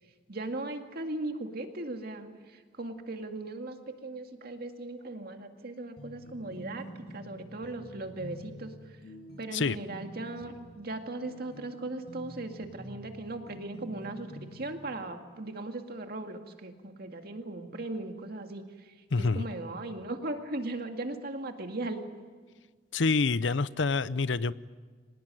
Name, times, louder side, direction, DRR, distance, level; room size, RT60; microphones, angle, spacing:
voice 1, 0.3-9.0 9.4-22.0, right 2 dB, 55° right, 5 dB, 2.2 m, -38 dB
sound 1, 6.0-14.8, equal, 60° left, 6.7 m, -48 dB
voice 2, 19.1-19.4 22.9-24.5, left 4 dB, 80° left, 17 dB, 0.7 m, -27 dB
25.0 x 19.5 x 9.2 m, 1.5 s
head